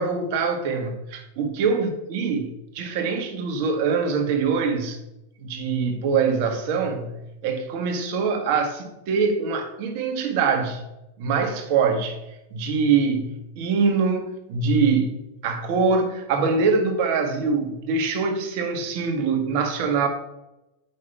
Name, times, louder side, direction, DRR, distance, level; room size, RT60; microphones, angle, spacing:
voice 1, 0.0-5.0 5.4-7.1 7.4-10.8 11.2-12.2 12.5-15.2 15.4-20.1, right 5 dB, 55° right, 1.6 m, -23 dB
8.3 x 5.7 x 3.4 m
hypercardioid pair, 110°, 0 cm